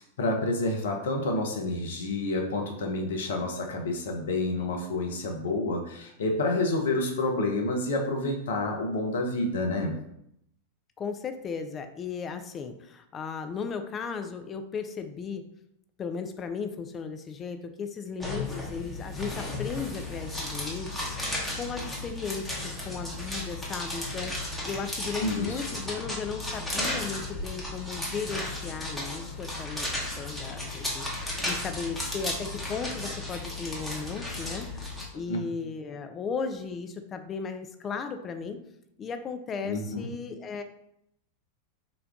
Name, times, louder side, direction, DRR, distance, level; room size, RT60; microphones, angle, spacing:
voice 1, 0.2-9.9 25.2-25.8 31.4-31.5 35.3-35.4 39.6-40.1, left 2 dB, 60° left, 2 dB, 0.6 m, -29 dB
voice 2, 11.0-15.4 16.0-21.2 21.6-31.1 31.4-38.6 39.0-40.6, left 5 dB, 25° left, 7 dB, 0.3 m, -36 dB
sound 1, 18.2-35.0, left 2 dB, ahead, 0.9 m, -34 dB
3.8 x 2.2 x 3.5 m, 0.77 s
figure-of-eight pair, 90°, 0 cm